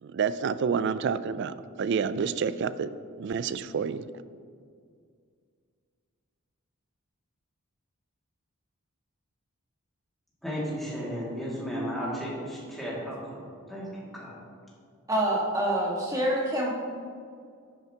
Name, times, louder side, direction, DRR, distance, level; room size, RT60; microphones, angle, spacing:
voice 1, 0.0-4.1, right 6 dB, 50° right, 14 dB, 0.3 m, -29 dB
voice 2, 10.4-13.4 13.7-14.4, equal, ahead, -7 dB, 2.2 m, -34 dB
voice 3, 15.1-16.7, right 1 dB, 15° right, -4 dB, 1.6 m, -26 dB
10.0 x 9.2 x 2.9 m, 2.2 s
head